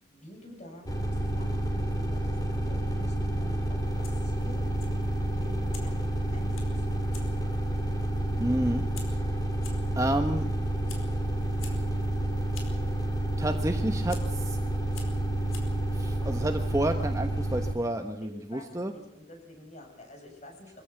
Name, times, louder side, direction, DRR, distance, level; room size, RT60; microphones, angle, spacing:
voice 1, 0.0-4.7 5.3-7.2 18.2-20.8, left 1 dB, 35° left, 2 dB, 7.6 m, -48 dB
sound 1, 0.9-17.7, right 1 dB, 20° left, 3.1 m, -29 dB
Fire, 3.8-17.2, left 5 dB, 90° left, 4.7 m, -52 dB
voice 2, 8.4-8.8 9.1-9.2 10.0-10.5 11.6-11.9 13.4-14.6 15.9-18.9, right 1 dB, 15° right, 6 dB, 1.1 m, -30 dB
25.0 x 15.5 x 7.1 m, 0.81 s
head